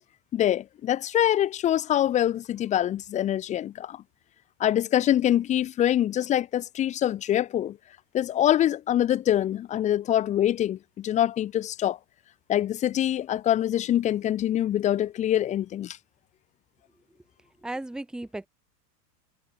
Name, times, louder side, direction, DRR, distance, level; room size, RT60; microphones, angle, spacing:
voice 1, 0.3-4.0 4.6-7.8 8.1-12.0 12.5-16.0, left 11 dB, 15° left, 1.0 m, -24 dB
voice 2, 17.6-18.5, right 2 dB, ahead, 1.5 m, -35 dB
supercardioid pair, 170°, 47 cm